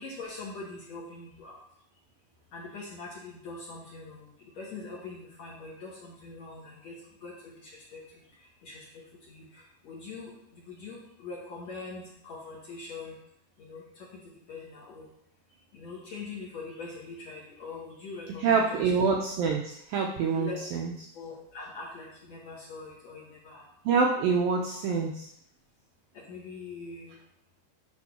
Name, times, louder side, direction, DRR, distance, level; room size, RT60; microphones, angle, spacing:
voice 1, 0.0-1.6 2.5-4.3 4.6-8.0 8.6-13.1 13.6-15.1 15.7-18.8 20.3-20.6 21.1-23.7 26.1-27.1, left 3 dB, 55° left, -5 dB, 2.0 m, -43 dB
voice 2, 18.3-20.9 23.9-25.3, right 5 dB, 80° right, 0 dB, 2.1 m, -26 dB
10.5 x 3.8 x 5.9 m, 0.74 s
omnidirectional pair, 4.9 m